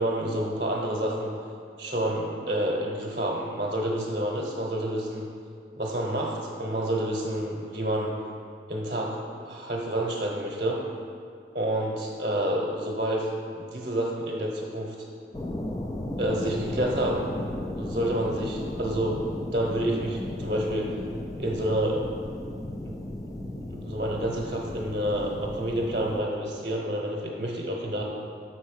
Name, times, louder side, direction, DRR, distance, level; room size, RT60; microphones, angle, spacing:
voice 1, 0.0-1.3 1.8-5.3 5.8-8.2 8.7-10.8 11.5-13.3 13.5-14.9 16.2-17.3 17.8-19.2 19.5-20.9 21.4-22.1 22.8-23.0 23.2-28.0, right 1 dB, 45° right, -3 dB, 0.9 m, -29 dB
sound 1, 15.3-26.2, left 1 dB, 20° left, 0.3 m, -35 dB
6.3 x 4.5 x 6.4 m, 2.3 s
head